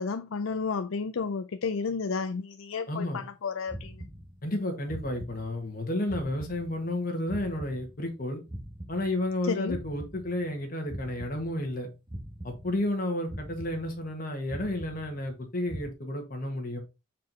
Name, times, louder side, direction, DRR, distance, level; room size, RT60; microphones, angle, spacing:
voice 1, 0.0-4.1 9.4-9.8, left 5 dB, 85° left, 0.5 m, -32 dB
voice 2, 2.9-3.3 4.4-8.4 8.9-11.9 12.4-16.8, left 1 dB, 45° left, 1.6 m, -31 dB
sound 1, 3.7-4.6 4.9-5.8 6.1-8.2 8.5-10.6 10.9-11.8 12.1-13.0 13.3-14.2 14.5-15.4 15.7-15.9, right 1 dB, 25° right, 1.1 m, -43 dB
7.3 x 4.6 x 4.0 m
head